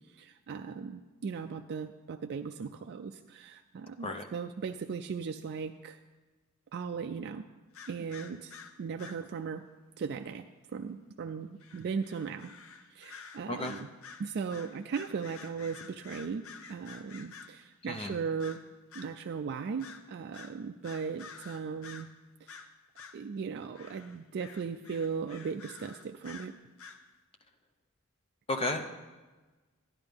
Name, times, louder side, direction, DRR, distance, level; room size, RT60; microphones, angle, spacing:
voice 1, 0.1-6.0 6.7-7.4 7.9-8.5 8.8-9.6 10.0-10.5 10.7-12.5 12.9-13.9 14.2-18.6 18.9-22.1 22.4-22.6 23.1-26.6, right 5 dB, 50° right, 6 dB, 0.3 m, -37 dB
sound 1, 7.7-9.3 11.6-17.7 18.4-19.1 19.8-20.1 20.3-22.1 22.5-23.2 23.7-27.0, left 6 dB, 65° left, 0.7 m, -50 dB
voice 2, 17.8-18.2 28.5-28.9, left 2 dB, 25° left, 5 dB, 0.6 m, -33 dB
12.5 x 10.5 x 3.5 m, 1.3 s
head